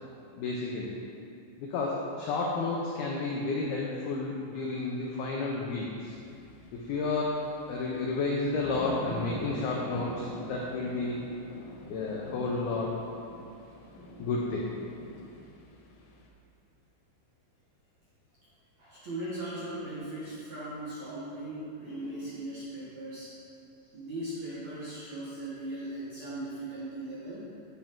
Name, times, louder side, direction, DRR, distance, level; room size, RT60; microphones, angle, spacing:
voice 1, 0.4-1.0 1.6-6.2 6.7-11.2 11.9-12.9 14.2-14.7, left 3 dB, 90° left, -3 dB, 2.1 m, -31 dB
sound 1, 6.1-16.3, left 1 dB, 70° left, 2.8 m, -44 dB
voice 2, 18.8-23.4 23.9-27.5, right 1 dB, 70° right, -9 dB, 1.6 m, -38 dB
9.7 x 8.9 x 3.7 m, 2.5 s
omnidirectional pair, 5.6 m